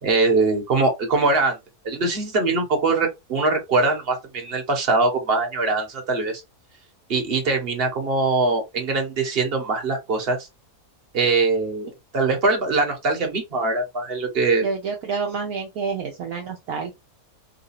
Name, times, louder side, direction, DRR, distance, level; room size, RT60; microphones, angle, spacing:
voice 1, 0.0-1.6 1.8-6.4 7.1-10.5 11.1-14.7, right 3 dB, 40° right, 1.4 m, -22 dB
voice 2, 14.6-16.9, right 5 dB, 65° right, 1.2 m, -28 dB
4.0 x 2.6 x 2.6 m
omnidirectional pair, 1.6 m